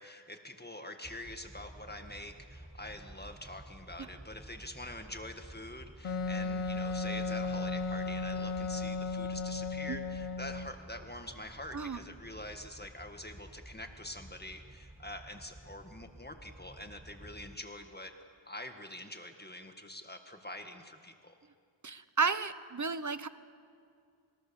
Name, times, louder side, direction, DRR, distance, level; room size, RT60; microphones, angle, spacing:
voice 1, 0.0-18.1 18.5-21.4, left 1 dB, 20° left, 5 dB, 1.8 m, -45 dB
sound 1, 1.0-17.6, right 1 dB, 5° right, 1.1 m, -52 dB
Wind instrument woodwind instrument, 6.0-10.7, left 3 dB, 90° left, 1.1 m, -35 dB
voice 2, 21.8-23.3, right 4 dB, 35° right, 13 dB, 1.1 m, -32 dB
25.5 x 21.5 x 7.1 m, 2.4 s
wide cardioid pair, 65°, 49 cm